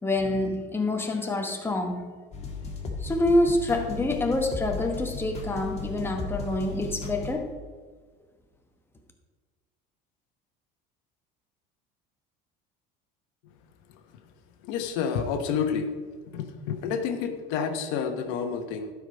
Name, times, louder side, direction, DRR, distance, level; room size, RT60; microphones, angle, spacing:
voice 1, 0.0-2.1 3.0-7.5, left 1 dB, 10° left, 4 dB, 1.1 m, -26 dB
sound 1, 2.3-7.3, left 4 dB, 35° left, 1.6 m, -36 dB
voice 2, 14.6-15.9 16.3-18.9, left 6 dB, 75° left, 6 dB, 1.1 m, -29 dB
11.5 x 5.0 x 5.2 m, 1.5 s
cardioid pair, 135°, 19 cm